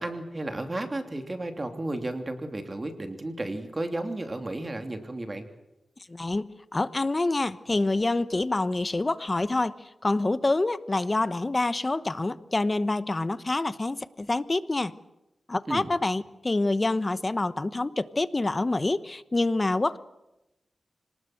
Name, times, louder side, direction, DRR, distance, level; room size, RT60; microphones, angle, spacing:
voice 1, 0.0-5.5 15.7-15.9, right 2 dB, 30° right, 6 dB, 3.0 m, -33 dB
voice 2, 6.1-9.8 10.0-14.9 15.5-20.0, left 2 dB, 30° left, 15 dB, 1.0 m, -27 dB
25.5 x 19.5 x 7.9 m, 0.95 s
cardioid pair, 70°, 0 cm